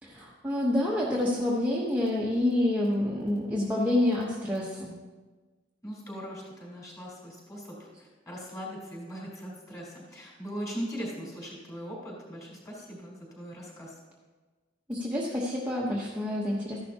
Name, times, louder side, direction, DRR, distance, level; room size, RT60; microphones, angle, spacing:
voice 1, 0.0-4.9 14.9-16.9, left 1 dB, 10° right, -5 dB, 1.0 m, -28 dB
voice 2, 5.8-13.9, equal, 15° left, -4 dB, 3.9 m, -40 dB
14.0 x 11.0 x 2.9 m, 1.3 s
head